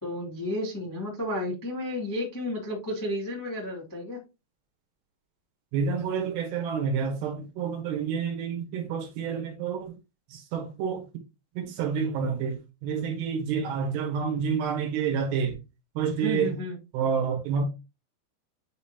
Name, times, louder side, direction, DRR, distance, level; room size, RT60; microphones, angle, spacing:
voice 1, 0.0-4.2 16.1-16.7, left 1 dB, 10° left, 0.9 m, -32 dB
voice 2, 5.7-9.9 10.3-11.0 11.6-15.6 16.0-16.6 16.9-17.6, right 6 dB, 70° right, 3.2 m, -29 dB
9.4 x 4.1 x 2.9 m
omnidirectional pair, 5.4 m